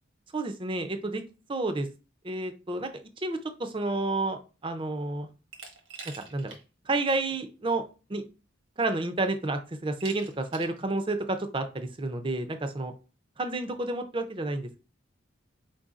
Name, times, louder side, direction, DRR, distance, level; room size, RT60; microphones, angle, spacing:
voice 1, 0.3-1.2 1.5-1.9 2.2-2.9 3.2-5.3 6.3-6.6 6.9-7.8 8.1-8.2 8.8-12.9 13.4-14.8, right 2 dB, 25° right, 7 dB, 0.4 m, -30 dB
Glass, 5.5-6.6 7.0-7.1 8.2-8.3 8.8-9.2 10.0-10.8, right 5 dB, 80° right, 1.1 m, -45 dB
4.5 x 3.9 x 2.4 m, 0.33 s
head